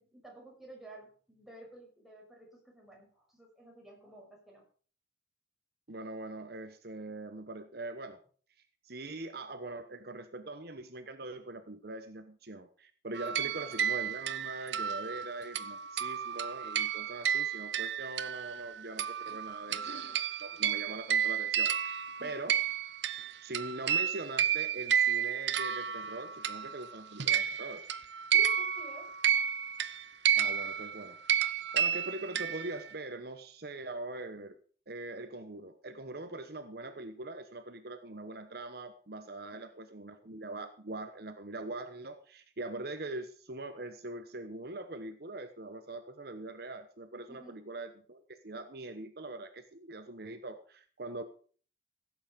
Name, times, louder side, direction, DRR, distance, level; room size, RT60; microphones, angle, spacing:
voice 1, 0.0-4.7 13.4-13.9 22.2-22.4 28.3-29.2 39.5-39.6 47.3-47.6, right 1 dB, ahead, -2 dB, 6.0 m, -52 dB
voice 2, 5.9-8.2 8.8-22.6 23.4-27.8 30.4-31.4 31.7-34.6 34.9-51.2, right 2 dB, 60° right, 8 dB, 1.1 m, -42 dB
sound 1, 13.2-18.7 19.0-26.8 27.2-32.9, right 9 dB, 75° right, 0.8 m, -31 dB
16.5 x 8.3 x 5.3 m, 0.42 s
head